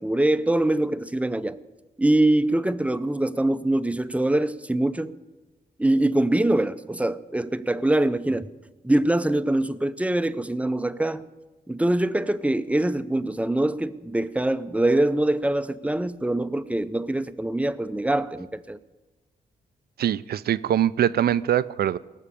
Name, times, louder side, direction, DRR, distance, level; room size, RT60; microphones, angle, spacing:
voice 1, 0.0-1.6 2.0-5.2 5.8-8.5 8.8-11.3 11.7-18.8, right 1 dB, 10° right, 0.5 m, -23 dB
voice 2, 20.0-22.0, right 11 dB, 65° right, 0.4 m, -23 dB
18.0 x 6.5 x 8.5 m
cardioid pair, 90°, 17 cm